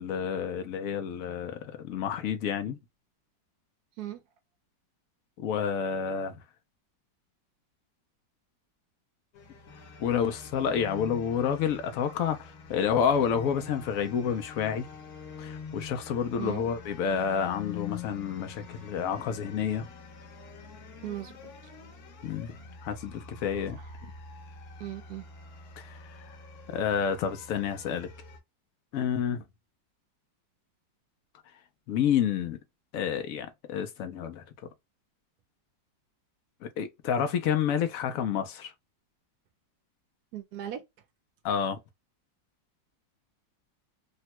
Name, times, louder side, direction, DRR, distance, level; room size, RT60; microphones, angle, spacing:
voice 1, 0.0-2.8 5.4-6.4 10.0-14.9 15.4-19.9 22.2-23.8 25.8-26.4 26.7-28.1 28.9-29.4 31.9-32.6 32.9-34.4 36.6-38.7 41.4-41.8, left 7 dB, 85° left, 0.7 m, -29 dB
sound 1, 9.3-28.4, left 5 dB, 60° left, 1.2 m, -45 dB
voice 2, 21.0-21.7 23.8-23.9 24.8-25.3 40.3-40.8, right 12 dB, 70° right, 0.9 m, -38 dB
3.3 x 2.1 x 2.8 m
omnidirectional pair, 2.0 m